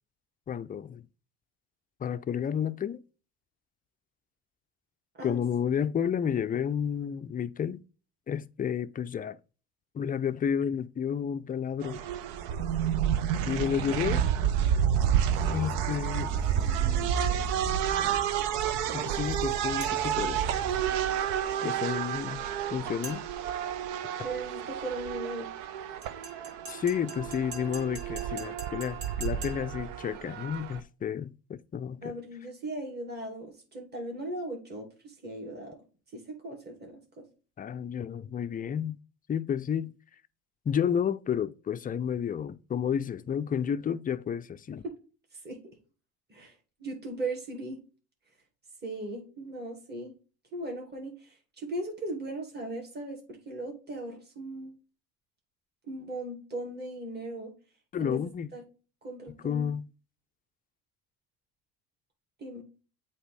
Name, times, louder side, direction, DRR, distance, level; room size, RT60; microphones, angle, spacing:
voice 1, 0.5-1.0 2.0-3.0 5.2-7.8 8.3-9.4 9.9-12.0 13.5-14.3 15.5-16.6 18.9-20.4 21.6-23.2 26.7-32.1 37.6-39.0 39.3-39.9 40.7-44.8 57.9-58.5 59.4-59.9, left 8 dB, 20° left, 0.4 m, -31 dB
sound 1, 11.8-30.8, right 9 dB, 75° right, 0.8 m, -30 dB
sound 2, 15.3-20.8, left 2 dB, ahead, 1.6 m, -40 dB
sound 3, 19.8-20.3 23.0-23.5 26.0-29.9, right 3 dB, 50° right, 2.7 m, -45 dB
voice 2, 24.2-25.5 32.0-35.8 36.1-37.2 45.4-45.6 46.3-46.5 46.8-47.8 48.8-50.1 50.5-54.7 55.9-57.5 58.0-58.2 58.5-58.6 59.0-59.7 62.4-62.6, right 2 dB, 25° right, 2.4 m, -38 dB
8.0 x 3.0 x 4.8 m
hypercardioid pair, 70°, 43 cm